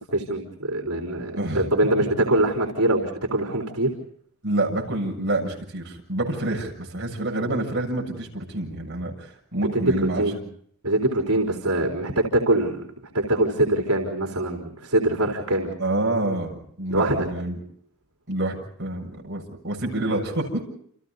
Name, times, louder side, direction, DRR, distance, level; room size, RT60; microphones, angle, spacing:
voice 1, 0.1-3.9 9.7-10.4 10.8-12.8 13.1-15.7 16.9-17.3, right 1 dB, 85° right, 1 dB, 4.0 m, -23 dB
voice 2, 1.3-1.6 4.4-10.3 15.8-17.6 18.3-20.6, right 1 dB, 50° right, 0 dB, 7.1 m, -27 dB
29.5 x 28.5 x 4.1 m, 0.66 s
head